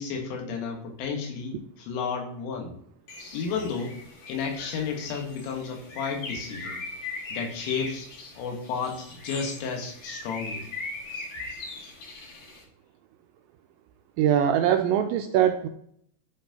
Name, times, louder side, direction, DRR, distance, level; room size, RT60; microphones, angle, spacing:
voice 1, 0.0-2.7 3.3-4.0 4.3-6.8 7.3-8.1 8.4-10.7, left 5 dB, 80° left, 2 dB, 3.9 m, -32 dB
Bird, 3.1-12.6, left 3 dB, 55° left, 1.8 m, -40 dB
voice 2, 14.2-15.7, right 10 dB, 85° right, 5 dB, 2.6 m, -22 dB
12.5 x 5.6 x 2.9 m, 0.67 s
omnidirectional pair, 5.6 m